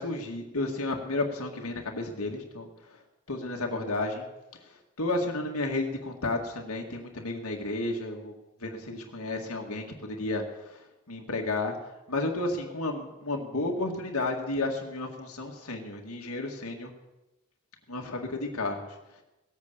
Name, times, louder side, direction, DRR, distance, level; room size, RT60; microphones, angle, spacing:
voice 1, 0.0-2.7 3.3-4.3 5.0-8.3 8.6-10.8 11.1-11.7 12.1-16.9 17.9-18.9, left 2 dB, 85° left, 1 dB, 2.0 m, -32 dB
18.5 x 8.4 x 6.9 m, 0.99 s
head